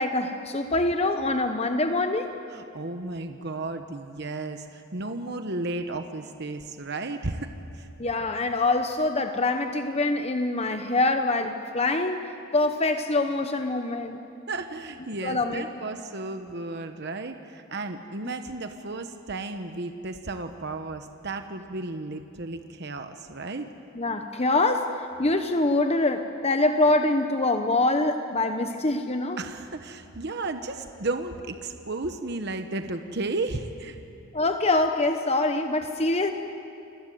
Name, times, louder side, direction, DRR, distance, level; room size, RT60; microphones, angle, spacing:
voice 1, 0.0-2.3 8.0-12.2 12.5-14.2 15.2-15.6 24.0-24.9 25.2-29.4 34.3-36.3, left 2 dB, 30° left, 7 dB, 1.0 m, -24 dB
voice 2, 2.5-7.9 14.5-23.7 29.4-34.0, right 2 dB, 50° right, 7 dB, 1.1 m, -34 dB
29.0 x 21.5 x 9.3 m, 2.7 s
head